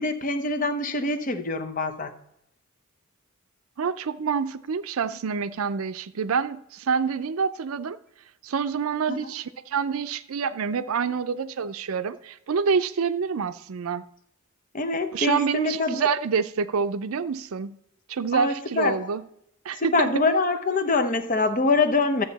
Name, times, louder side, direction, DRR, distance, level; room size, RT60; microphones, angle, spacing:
voice 1, 0.0-2.2 9.1-9.3 14.7-16.1 18.3-19.0 19.7-22.2, left 3 dB, 40° left, 8 dB, 0.8 m, -24 dB
voice 2, 3.8-8.0 8.4-14.0 15.1-17.7 18.1-19.2 19.7-20.1, right 6 dB, 85° right, 13 dB, 0.5 m, -27 dB
12.5 x 7.8 x 4.0 m, 0.76 s
head